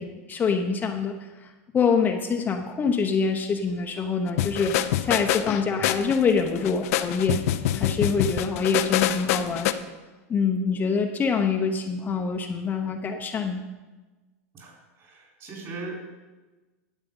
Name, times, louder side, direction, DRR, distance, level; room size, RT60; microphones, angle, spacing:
voice 1, 0.0-4.8 5.0-7.4 7.8-9.7 10.3-13.6, left 5 dB, 20° left, 3 dB, 0.8 m, -25 dB
sound 1, 4.4-9.7, left 12 dB, 70° left, 0.7 m, -25 dB
voice 2, 14.5-16.2, right 3 dB, 40° right, -1 dB, 4.2 m, -39 dB
11.5 x 8.3 x 5.4 m, 1.2 s
supercardioid pair, 125°, 8 cm